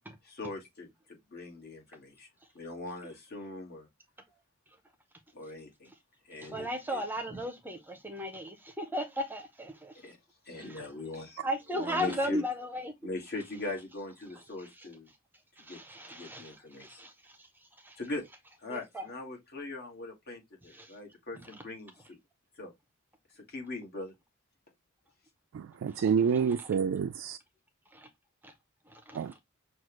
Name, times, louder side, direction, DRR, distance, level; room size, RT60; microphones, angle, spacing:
voice 1, 0.2-2.3 2.5-3.9 5.3-5.9 6.3-7.0 10.0-10.2 10.5-11.4 11.7-12.4 13.0-15.1 15.6-15.8 16.1-17.1 18.0-18.2 18.6-22.2 22.6-22.7 23.4-24.1, left 2 dB, 50° left, 1.7 m, -41 dB
voice 2, 6.3-10.1 10.5-10.9 11.4-12.9 14.6-14.9 15.6-18.0 18.7-19.0 20.7-21.0 21.4-21.5 25.9-26.0 26.3-26.7 27.9-28.1 28.4-28.5 28.9-29.4, equal, 10° right, 0.6 m, -37 dB
voice 3, 25.5-27.4 29.1-29.3, right 7 dB, 60° right, 0.3 m, -28 dB
6.1 x 2.4 x 3.0 m
head